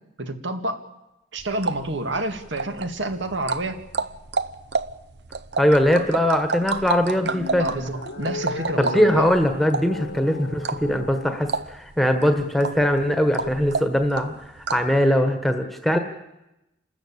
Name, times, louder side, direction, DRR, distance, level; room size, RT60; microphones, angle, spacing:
voice 1, 0.2-0.8 1.3-3.8 7.6-9.3, right 1 dB, 80° right, 7 dB, 2.1 m, -29 dB
sound 1, 1.4-15.0, right 4 dB, 60° right, 0.8 m, -31 dB
voice 2, 5.6-7.7 8.8-16.0, equal, ahead, 6 dB, 1.3 m, -21 dB
sound 2, 7.0-11.4, left 4 dB, 90° left, 1.5 m, -36 dB
28.5 x 13.5 x 8.7 m, 0.95 s
head